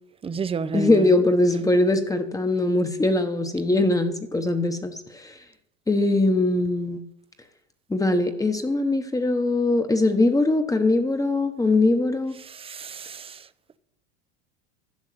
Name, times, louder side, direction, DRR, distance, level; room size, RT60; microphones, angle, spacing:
voice 1, 0.2-1.1 12.5-13.4, right 5 dB, 15° right, 0.6 m, -31 dB
voice 2, 0.7-5.3 5.9-7.0 7.9-12.4, left 2 dB, 10° left, 1.1 m, -21 dB
11.5 x 6.1 x 7.9 m
supercardioid pair, 105°, 34 cm